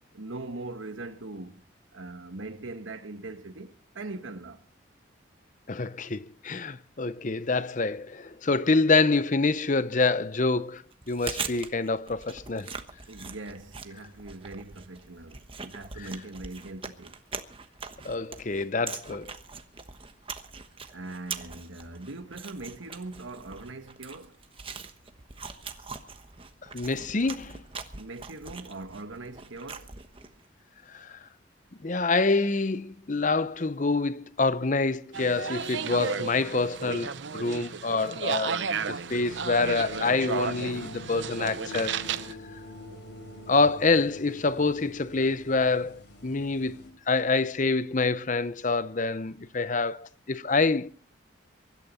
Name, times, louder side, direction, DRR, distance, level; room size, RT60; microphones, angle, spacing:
voice 1, 0.1-1.6 1.9-4.6 13.1-17.1 20.9-24.4 28.0-29.9, right 2 dB, 85° right, 1.5 m, -41 dB
voice 2, 5.7-10.8 11.1-12.7 16.0-16.1 18.0-19.3 26.7-27.6 30.9-31.2 31.8-38.6 38.9-42.0 43.5-51.0, left 3 dB, 40° left, 0.7 m, -26 dB
Chewing mastication, 10.9-30.4, right 5 dB, 30° right, 1.1 m, -42 dB
sound 1, 35.1-42.3, right 5 dB, 65° right, 0.8 m, -33 dB
sound 2, 39.1-46.9, left 1 dB, 65° left, 4.0 m, -45 dB
23.5 x 12.5 x 4.2 m
head